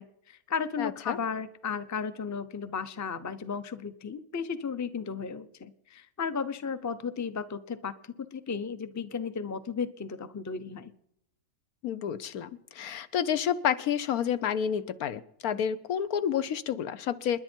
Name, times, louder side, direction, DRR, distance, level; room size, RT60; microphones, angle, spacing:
voice 1, 0.0-10.9, left 6 dB, 20° left, 13 dB, 0.4 m, -34 dB
voice 2, 0.8-1.2 11.8-12.5 12.7-17.4, left 8 dB, 90° left, 13 dB, 1.3 m, -29 dB
28.5 x 10.5 x 4.5 m, 0.79 s
omnidirectional pair, 1.5 m